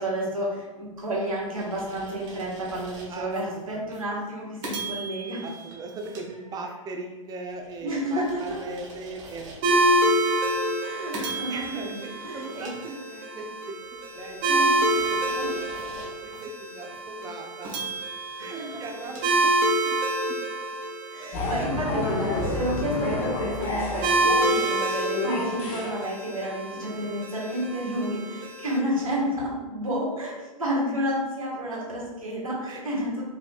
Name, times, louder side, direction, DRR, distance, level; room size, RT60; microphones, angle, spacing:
voice 1, 0.0-5.4 7.8-8.6 10.8-12.7 14.4-15.1 15.4-15.5 18.5-18.8 21.1-33.2, equal, 85° right, -4 dB, 1.5 m, -31 dB
sound 1, 1.0-3.4 3.9-4.1 4.6-7.0 7.5-9.9 10.4-10.6 11.1-13.5 14.0-16.4 16.9-17.0 17.6-20.0, right 4 dB, 65° right, 1.3 m, -41 dB
voice 2, 3.1-3.6 4.4-4.6 5.4-10.1 11.5-13.8 14.1-14.6 15.1-15.9 16.2-17.7 18.4-19.5 19.8-20.0 32.7-32.8, right 3 dB, 20° right, 2 dB, 0.6 m, -39 dB
sound 2, 9.6-28.8, right 1 dB, 40° right, 1.0 m, -27 dB
sound 3, 21.3-26.0, left 2 dB, 50° left, 1.5 m, -29 dB
4.8 x 3.4 x 2.4 m, 1.1 s
figure-of-eight pair, 100°, 17 cm